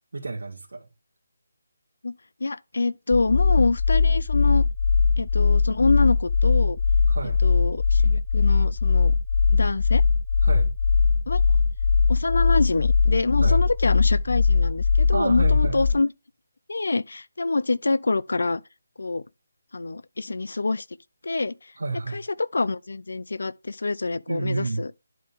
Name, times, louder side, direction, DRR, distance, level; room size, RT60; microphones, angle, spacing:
voice 1, 0.1-0.9 7.1-7.4 10.4-10.8 13.4-13.7 15.1-15.8 21.8-22.2 24.3-24.8, right 3 dB, 75° right, 1.8 m, -30 dB
voice 2, 2.4-4.6 5.2-6.8 7.4-9.1 9.5-10.0 11.3-11.4 12.1-16.1 16.7-18.6 19.0-19.2 19.7-20.8 21.2-21.5 22.1-25.0, left 3 dB, 75° left, 0.5 m, -26 dB
sound 1, 3.1-15.9, left 5 dB, 25° left, 0.6 m, -20 dB
11.0 x 3.9 x 3.5 m
hypercardioid pair, 175°, 0 cm